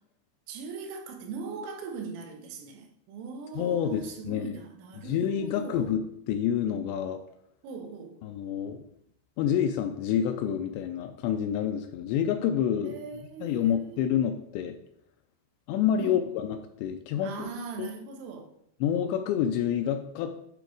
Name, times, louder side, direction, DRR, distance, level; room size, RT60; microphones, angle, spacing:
voice 1, 0.5-5.9 7.6-8.2 12.8-14.2 16.0-16.2 17.2-18.5, right 4 dB, 80° right, 3.2 m, -40 dB
voice 2, 3.6-4.6 5.0-7.2 8.2-8.9 9.4-13.0 13.4-14.8 15.7-17.3 17.8-17.9 18.8-20.4, left 9 dB, 85° left, 2.6 m, -28 dB
9.1 x 4.0 x 4.8 m
omnidirectional pair, 5.3 m